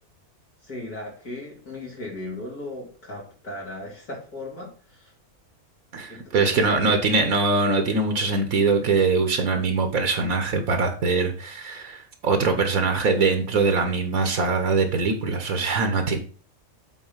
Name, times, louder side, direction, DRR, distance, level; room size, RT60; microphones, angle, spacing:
voice 1, 0.6-5.1 6.1-7.0, left 2 dB, 85° left, -3 dB, 4.0 m, -37 dB
voice 2, 5.9-16.2, right 4 dB, 70° right, 6 dB, 1.5 m, -22 dB
8.2 x 4.3 x 5.6 m, 0.39 s
omnidirectional pair, 1.5 m